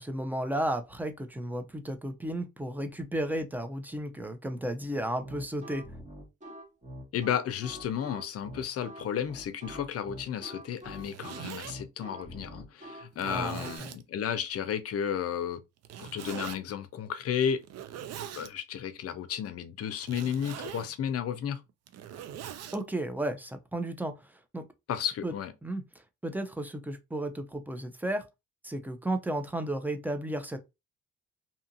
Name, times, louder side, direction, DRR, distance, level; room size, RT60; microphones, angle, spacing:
voice 1, 0.0-5.8 13.2-13.9 22.7-24.1 24.5-24.6 25.2-25.3 25.6-25.8 26.2-28.2 28.6-30.6, right 1 dB, 5° right, 0.5 m, -33 dB
sound 1, 5.2-13.8, equal, 25° right, 1.1 m, -45 dB
voice 2, 7.1-15.6 16.0-17.6 18.4-21.6 24.9-25.5, left 8 dB, 50° left, 0.5 m, -33 dB
Zipper (clothing), 10.8-11.7 12.4-12.5 13.1-14.0 15.8-16.6 17.6-18.5 20.0-20.9 21.7-22.8, right 10 dB, 60° right, 0.4 m, -42 dB
2.8 x 2.4 x 2.6 m
cardioid pair, 90°, 30 cm